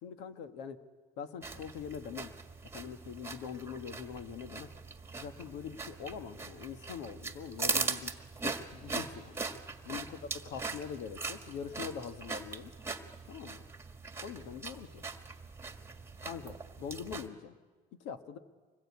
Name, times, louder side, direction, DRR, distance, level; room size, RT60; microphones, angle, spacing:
voice 1, 0.0-0.8 1.2-2.3 2.7-4.7 5.2-8.1 8.4-9.4 9.8-12.7 13.3-13.6 14.2-15.0 16.2-17.5 18.0-18.4, left 7 dB, 85° left, 9 dB, 1.6 m, -43 dB
sound 1, 1.4-17.3, right 4 dB, 15° right, 1.7 m, -40 dB
25.5 x 21.0 x 8.5 m, 1.4 s
cardioid pair, 115°, 18 cm